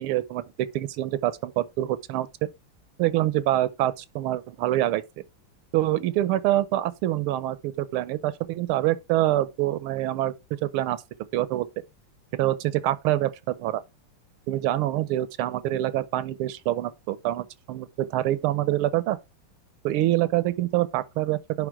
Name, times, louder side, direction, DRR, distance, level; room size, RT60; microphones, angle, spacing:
voice 1, 0.0-2.3 3.0-5.0 5.7-10.3 10.6-11.0 11.3-11.7 12.4-13.8 14.5-19.2 19.8-21.7, right 14 dB, 80° right, 1.5 m, -25 dB
10.0 x 3.5 x 4.7 m
omnidirectional pair, 2.4 m